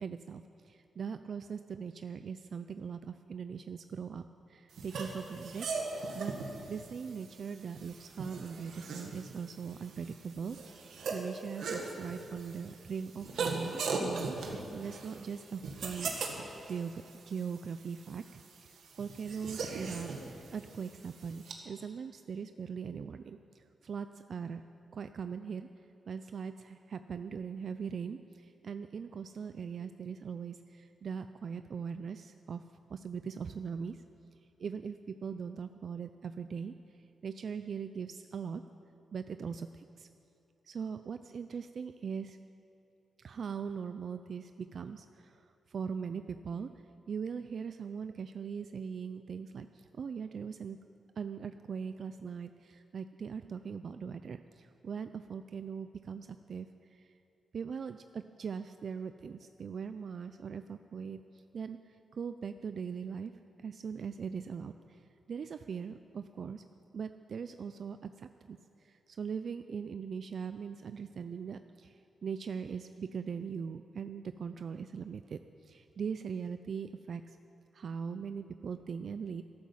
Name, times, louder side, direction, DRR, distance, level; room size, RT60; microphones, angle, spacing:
voice 1, 0.0-5.7 5.9-6.3 6.7-24.6 24.9-25.7 26.1-32.6 32.9-34.0 34.6-36.7 37.2-38.6 39.1-40.1 40.7-42.4 43.2-46.7 47.1-50.8 51.2-57.1 57.5-63.3 63.6-65.0 65.3-66.6 66.9-77.4 77.7-79.4, right 6 dB, 55° right, 10 dB, 0.4 m, -40 dB
sound 1, 4.7-21.5, right 4 dB, 90° right, 1.7 m, -40 dB
13.0 x 12.0 x 7.3 m, 2.7 s
wide cardioid pair, 130°, 0 cm